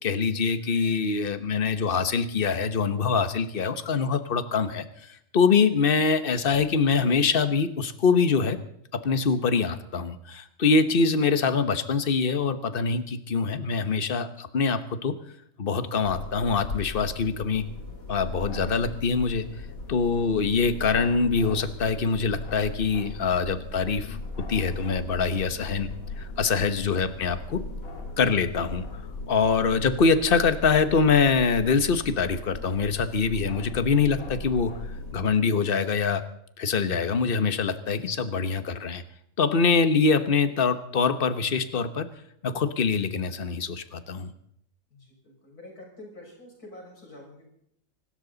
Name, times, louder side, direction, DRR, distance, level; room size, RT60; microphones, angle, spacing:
voice 1, 0.0-8.6 8.9-15.1 15.6-17.6 18.1-19.5 19.9-24.2 24.5-25.9 26.2-27.6 28.2-29.0 29.3-34.7 35.1-36.2 36.6-39.0 39.4-42.1 42.4-44.3, left 5 dB, 40° left, 11 dB, 1.2 m, -24 dB
sound 1, 16.0-35.1, left 2 dB, 65° left, 2.5 m, -38 dB
voice 2, 44.9-47.5, left 1 dB, 85° left, -1 dB, 6.6 m, -47 dB
25.5 x 12.5 x 4.0 m, 0.71 s
omnidirectional pair, 1.6 m